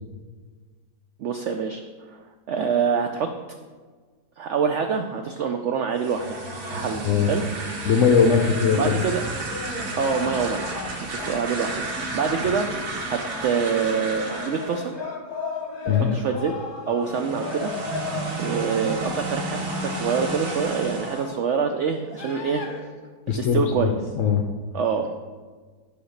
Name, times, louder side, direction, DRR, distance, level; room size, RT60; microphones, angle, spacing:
voice 1, 1.2-1.8 2.1-2.2 2.5-3.3 4.4-6.4 6.7-7.4 8.8-9.2 10.0-12.7 13.1-14.9 15.9-16.5 16.9-17.7 18.1-22.6 23.3-23.9 24.7-25.1, right 6 dB, 85° right, 5 dB, 0.6 m, -26 dB
sound 1, 5.9-14.9 17.0-21.3, right 2 dB, 55° right, 1.5 m, -32 dB
sound 2, 6.2-21.5 22.0-22.8, left 3 dB, 40° left, 0.9 m, -37 dB
voice 2, 7.8-9.0 15.9-16.1 23.3-24.4, left 6 dB, 65° left, 4 dB, 0.8 m, -20 dB
9.4 x 3.4 x 6.4 m, 1.5 s
omnidirectional pair, 1.8 m